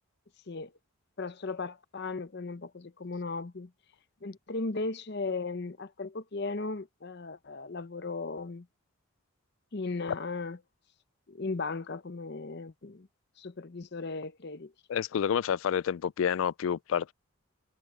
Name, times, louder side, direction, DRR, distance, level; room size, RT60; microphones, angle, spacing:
voice 1, 1.2-3.7 4.2-8.7 9.7-10.6 11.3-13.1 13.4-14.7, left 3 dB, 50° left, 0.7 m, -36 dB
voice 2, 14.9-17.1, left 8 dB, 65° left, 0.3 m, -29 dB
head